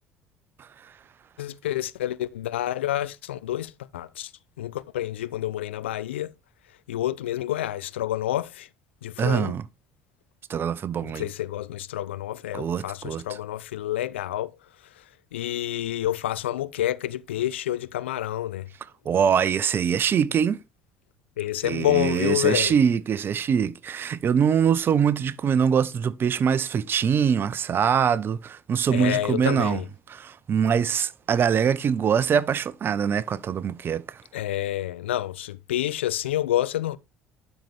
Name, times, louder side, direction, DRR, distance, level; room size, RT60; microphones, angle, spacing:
voice 1, 1.4-4.3 4.6-6.3 6.9-8.7 9.0-9.6 11.0-14.6 15.0-15.1 15.3-18.7 21.4-22.7 28.9-29.8 34.3-37.0, left 13 dB, 70° left, 0.4 m, -28 dB
voice 2, 9.2-9.6 10.5-11.2 12.5-13.4 19.1-20.6 21.6-29.8 30.1-34.2, right 7 dB, 35° right, 0.5 m, -23 dB
12.0 x 4.4 x 3.4 m
figure-of-eight pair, 55°, 6 cm